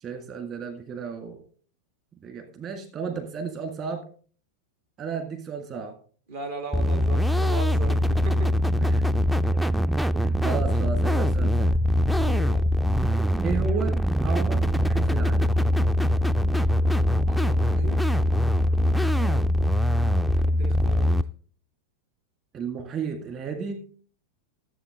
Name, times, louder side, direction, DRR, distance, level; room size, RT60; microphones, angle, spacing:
voice 1, 0.0-1.4 2.2-4.0 5.0-6.0 8.8-9.1 10.2-11.7 13.4-15.6 19.1-19.5 22.5-23.8, right 5 dB, 30° right, 5 dB, 1.9 m, -33 dB
voice 2, 6.3-8.5 12.2-12.8 17.3-18.1 20.3-21.1, right 3 dB, 60° right, 4 dB, 1.8 m, -38 dB
sound 1, 6.7-21.2, equal, ahead, 0.4 m, -22 dB
13.5 x 7.6 x 3.6 m, 0.43 s
figure-of-eight pair, 90°, 0 cm